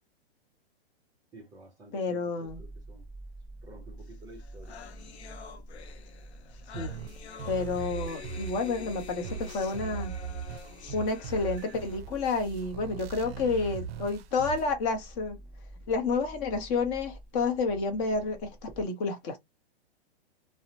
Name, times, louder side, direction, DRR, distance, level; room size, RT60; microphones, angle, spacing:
voice 1, 1.3-3.0 3.6-4.8, right 1 dB, 10° right, 0.5 m, -51 dB
voice 2, 1.9-2.6 6.7-6.9 7.5-10.1 10.9-15.4 15.9-19.4, left 4 dB, 30° left, 0.7 m, -30 dB
sound 1, 2.5-18.8, right 1 dB, 5° left, 1.3 m, -49 dB
sound 2, 4.1-4.2 4.4-12.0, left 8 dB, 85° left, 0.7 m, -47 dB
sound 3, 6.7-14.7, right 7 dB, 65° right, 0.4 m, -40 dB
2.7 x 2.1 x 2.7 m
hypercardioid pair, 140°, 32 cm